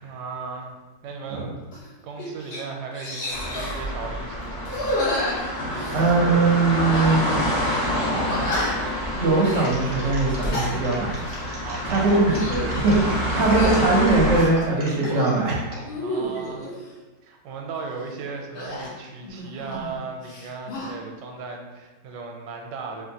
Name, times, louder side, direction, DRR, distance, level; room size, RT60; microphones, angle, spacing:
voice 1, 0.0-1.5 2.0-7.5 7.9-8.4 11.6-12.3 13.1-13.5 15.9-16.7 17.2-23.1, right 4 dB, 90° right, 2 dB, 1.2 m, -36 dB
sound 1, 1.7-1.9 2.2-2.6 2.9-3.8 4.6-6.2 6.9-7.4 7.7-7.8 8.3-8.9 9.4-9.7 10.2-10.7 11.2-11.4 12.1-12.7 13.4-13.8 14.3-15.3 15.8-16.7 18.5-20.0 20.2-20.9, left 1 dB, 55° left, 0.7 m, -30 dB
sound 2, 3.3-14.4, equal, 80° left, 1.5 m, -28 dB
voice 2, 5.9-7.6 9.1-11.1 11.8-15.6, right 3 dB, 60° right, -2 dB, 0.8 m, -21 dB
sound 3, 9.6-15.8 16.3-16.7, right 1 dB, 25° right, 0.8 m, -39 dB
3.7 x 2.4 x 2.7 m, 1.2 s
omnidirectional pair, 1.8 m